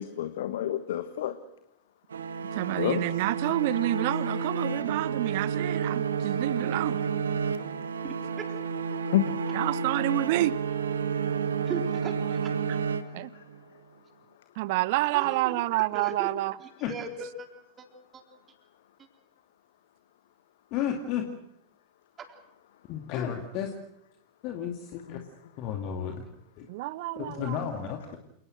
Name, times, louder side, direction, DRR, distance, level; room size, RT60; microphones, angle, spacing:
voice 1, 0.0-1.4 2.8-3.0 3.5-3.6 9.1-9.4 13.1-13.4 25.1-25.2, left 12 dB, 55° left, 1.3 m, -29 dB
sound 1, 2.1-13.6, right 6 dB, 70° right, 1.4 m, -31 dB
voice 2, 2.5-7.0 9.5-10.6 13.1-13.3 14.6-16.5 26.7-27.7, right 17 dB, 50° right, 0.8 m, -28 dB
voice 3, 8.0-8.5 11.6-12.8 15.1-15.6 15.9-16.3 16.6-17.5 17.8-17.9 18.1-18.2 19.0-19.1 22.2-22.3, right 4 dB, 25° right, 4.0 m, -38 dB
voice 4, 20.7-21.3 22.9-23.7 24.4-25.2 25.6-26.2 26.6-26.7 27.2-28.2, left 9 dB, 40° left, 2.3 m, -32 dB
28.5 x 19.0 x 6.4 m
figure-of-eight pair, 90°, 0 cm